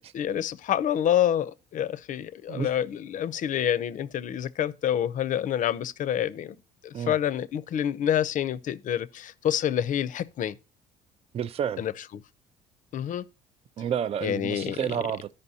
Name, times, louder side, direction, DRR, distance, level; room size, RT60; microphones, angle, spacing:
voice 1, 0.1-6.6 6.8-10.6 11.8-12.2 12.9-13.2 14.2-14.8, left 10 dB, 50° left, 0.5 m, -27 dB
voice 2, 11.3-11.8 13.8-15.3, right 8 dB, 35° right, 0.4 m, -30 dB
14.0 x 5.2 x 2.7 m
cardioid pair, 110°, 17 cm